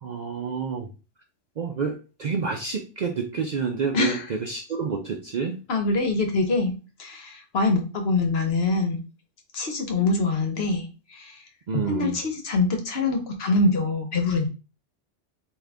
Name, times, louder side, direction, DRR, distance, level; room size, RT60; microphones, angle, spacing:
voice 1, 0.0-0.9 1.6-5.6 11.7-12.2, right 5 dB, 55° right, 3 dB, 0.5 m, -29 dB
voice 2, 5.7-6.7 7.0-9.0 9.5-11.4 11.9-14.5, left 3 dB, 60° left, 4 dB, 1.1 m, -24 dB
3.7 x 2.6 x 3.4 m, 0.32 s
omnidirectional pair, 1.2 m